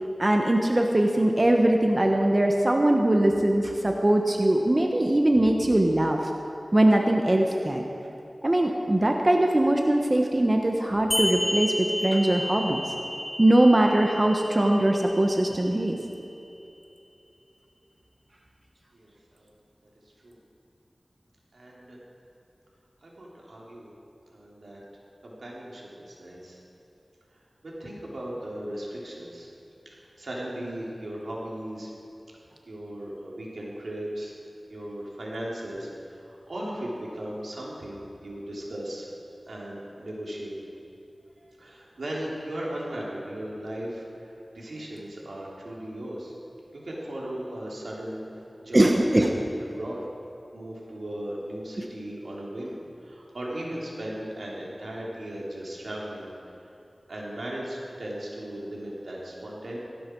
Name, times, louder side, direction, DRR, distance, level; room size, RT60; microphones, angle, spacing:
voice 1, 0.2-6.2 6.7-7.8 8.4-12.8 13.4-16.0 48.7-49.3, right 1 dB, 30° right, 2 dB, 1.2 m, -21 dB
sound 1, 11.1-16.1, equal, 10° left, 0.8 m, -32 dB
voice 2, 18.9-19.5 20.2-20.4 21.5-22.0 23.0-23.9 24.3-24.8 25.2-26.6 27.3-29.5 30.2-31.9 32.7-34.3 34.7-39.1 39.5-40.6 41.6-46.3 46.7-48.3 48.6-49.0 49.3-50.0 50.5-56.3 57.1-59.8, right 1 dB, 85° right, -4 dB, 3.4 m, -37 dB
18.0 x 16.0 x 4.7 m, 2.8 s
wide cardioid pair, 60°, 0 cm